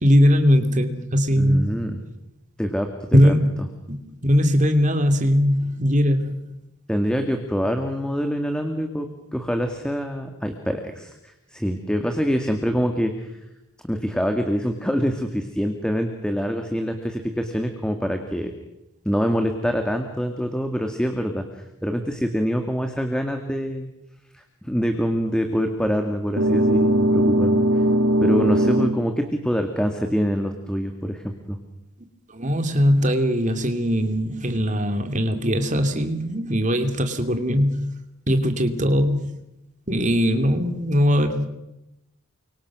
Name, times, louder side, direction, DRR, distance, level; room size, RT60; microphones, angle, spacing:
voice 1, 0.0-1.7 3.1-3.5 3.9-4.0 4.2-6.3 32.3-37.9 38.3-39.3 39.9-41.5, equal, 35° right, 7 dB, 2.7 m, -20 dB
voice 2, 1.4-2.0 2.6-3.3 6.9-13.3 13.9-18.5 19.0-21.4 21.8-23.9 24.3-27.7 28.2-31.6, equal, 5° left, 5 dB, 2.0 m, -25 dB
sound 1, 26.4-29.0, right 1 dB, 85° right, 2.2 m, -19 dB
30.0 x 25.0 x 6.2 m, 0.92 s
head